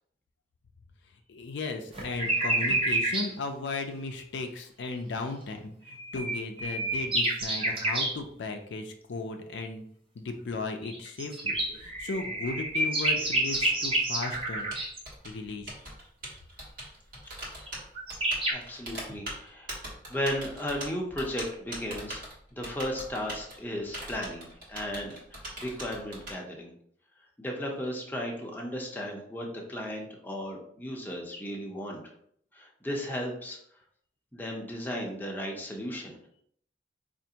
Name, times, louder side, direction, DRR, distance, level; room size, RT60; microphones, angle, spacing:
voice 1, 1.3-9.8 10.2-14.7 15.2-15.8, left 3 dB, 70° left, 5 dB, 0.4 m, -36 dB
sound 1, 1.9-3.3 5.9-8.2 10.8-15.0 17.7-17.8 17.9-18.5, right 1 dB, 30° right, 0.7 m, -28 dB
Typing, 11.5-26.3, right 1 dB, 50° right, 1.1 m, -42 dB
voice 2, 18.5-19.7 20.1-22.2 22.5-26.7 27.4-32.0 32.5-33.6 34.3-36.2, equal, 10° left, -1 dB, 0.6 m, -35 dB
4.4 x 2.5 x 2.8 m, 0.65 s
head